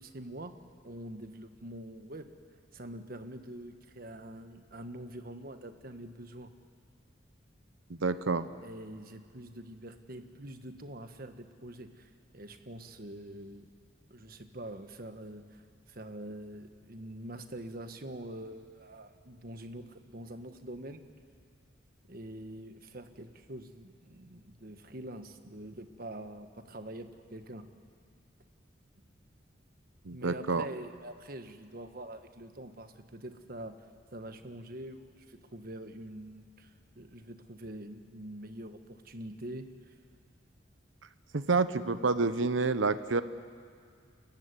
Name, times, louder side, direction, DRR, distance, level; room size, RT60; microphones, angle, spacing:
voice 1, 0.0-2.3 2.7-6.5 8.5-13.7 14.1-15.6 15.9-21.0 22.1-27.7 30.1-33.8 34.1-39.9, right 1 dB, 50° right, 8 dB, 1.4 m, -45 dB
voice 2, 7.9-8.5 30.0-30.6 41.3-43.2, right 4 dB, 90° right, 13 dB, 0.8 m, -28 dB
29.5 x 15.0 x 9.8 m, 2.3 s
head